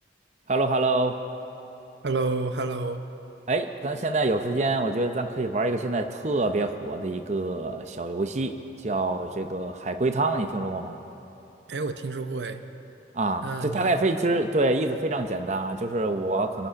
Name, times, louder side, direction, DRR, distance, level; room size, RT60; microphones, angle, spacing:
voice 1, 0.5-1.2 3.5-8.5 8.8-11.0 13.1-16.7, right 2 dB, 40° right, 7 dB, 0.7 m, -26 dB
voice 2, 2.0-3.1 11.7-12.6 13.4-14.0, right 3 dB, 75° right, 8 dB, 0.7 m, -29 dB
25.0 x 9.7 x 5.8 m, 3.0 s
head